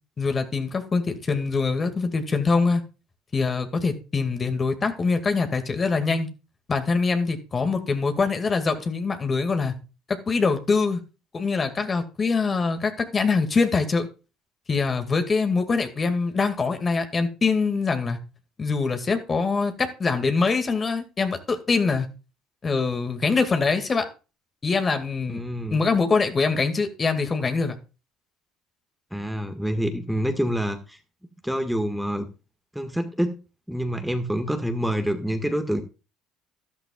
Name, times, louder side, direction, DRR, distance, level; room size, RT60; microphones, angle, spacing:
voice 1, 0.2-2.8 3.3-6.3 6.7-9.7 10.1-11.0 11.3-14.1 14.7-18.2 18.6-22.1 22.6-24.1 24.6-25.4 25.7-27.8, left 4 dB, 30° left, 7 dB, 2.2 m, -24 dB
voice 2, 25.3-25.8 29.1-31.0 31.4-32.3 32.7-33.4 33.7-35.8, equal, ahead, 6 dB, 1.7 m, -27 dB
13.0 x 12.5 x 2.4 m, 0.32 s
hypercardioid pair, 70°, 0 cm